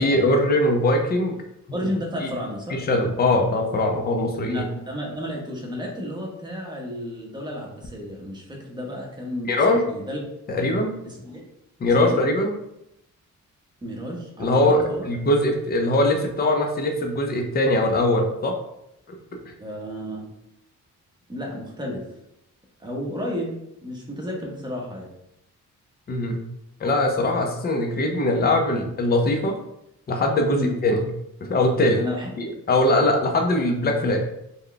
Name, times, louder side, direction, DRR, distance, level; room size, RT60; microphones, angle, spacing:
voice 1, 0.0-1.4 1.7-1.9 2.2-2.3 2.7-4.6 9.5-9.9 10.5-10.9 11.8-12.5 14.4-18.5 19.1-19.2 19.4-19.5 26.1-26.4 26.8-29.6 30.1-31.0 31.4-32.0 32.4-34.2, left 1 dB, 30° left, 3 dB, 0.5 m, -21 dB
voice 2, 1.7-2.8 4.4-10.2 11.0-11.4 12.0-12.2 13.8-15.1 19.6-20.3 21.3-22.0 22.8-23.5 23.8-25.1 30.5-30.7 32.0-32.3, equal, 15° right, -2 dB, 0.8 m, -32 dB
3.3 x 2.2 x 3.8 m, 0.82 s
wide cardioid pair, 145°, 32 cm